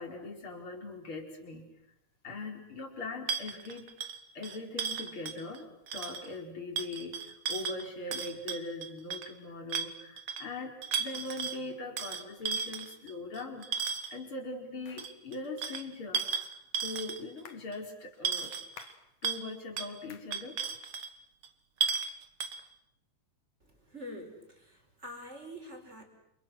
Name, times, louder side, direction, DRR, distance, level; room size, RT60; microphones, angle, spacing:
voice 1, 0.0-1.7 2.2-3.9 4.3-5.7 5.9-18.5 19.2-20.6, left 2 dB, 45° left, 3 dB, 5.2 m, -41 dB
sound 1, 3.3-5.6 5.9-6.3 6.8-9.3 9.7-10.5 10.8-11.6 12.0-14.2 15.0-17.4 17.7-17.8 18.2-18.9 19.2-19.5 19.8-19.9 20.3-21.1 21.4-21.5 21.8-22.1 22.4-22.6, right 6 dB, 50° right, 2.1 m, -35 dB
sound 2, 14.9-15.1 16.2-16.5 17.5-17.7 18.8-19.1 20.1-20.4, left 8 dB, 80° left, 3.1 m, -50 dB
voice 2, 23.9-26.0, equal, 20° right, 3 dB, 5.5 m, -45 dB
29.5 x 29.0 x 6.4 m, 0.79 s
omnidirectional pair, 3.4 m